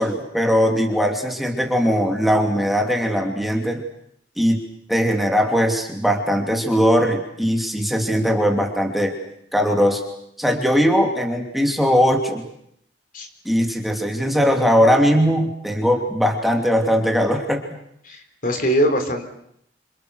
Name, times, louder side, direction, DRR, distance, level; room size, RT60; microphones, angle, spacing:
voice 1, 0.0-3.8 4.4-4.6 4.9-9.1 9.5-10.0 10.4-12.4 13.4-17.6, equal, ahead, 2 dB, 3.0 m, -19 dB
voice 2, 18.0-19.2, equal, 50° left, 6 dB, 3.9 m, -22 dB
27.5 x 27.0 x 6.6 m, 0.72 s
head